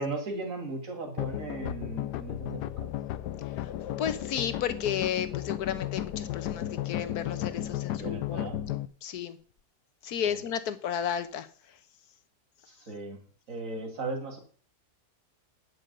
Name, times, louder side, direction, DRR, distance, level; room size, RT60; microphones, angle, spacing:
voice 1, 0.0-2.9 7.9-8.6 10.2-10.4 12.7-13.2 13.5-14.4, right 2 dB, 50° right, 2.6 m, -37 dB
sound 1, 1.2-8.9, left 12 dB, 85° left, 1.3 m, -34 dB
voice 2, 4.0-9.4 10.0-11.5, left 9 dB, 70° left, 1.4 m, -33 dB
9.2 x 6.3 x 6.6 m
omnidirectional pair, 1.7 m